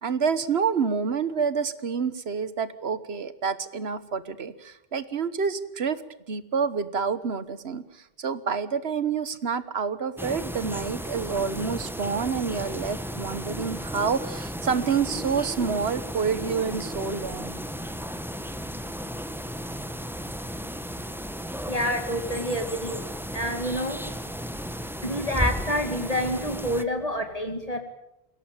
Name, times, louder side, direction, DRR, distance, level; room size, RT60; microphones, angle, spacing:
voice 1, 0.0-6.0 6.3-17.6, right 6 dB, 75° right, 14 dB, 1.4 m, -28 dB
sound 1, 10.2-26.8, equal, ahead, 1.0 m, -34 dB
voice 2, 21.7-23.0 23.3-24.0 25.0-27.8, equal, 35° left, 5 dB, 2.0 m, -28 dB
22.0 x 17.0 x 9.0 m, 0.88 s
omnidirectional pair, 1.1 m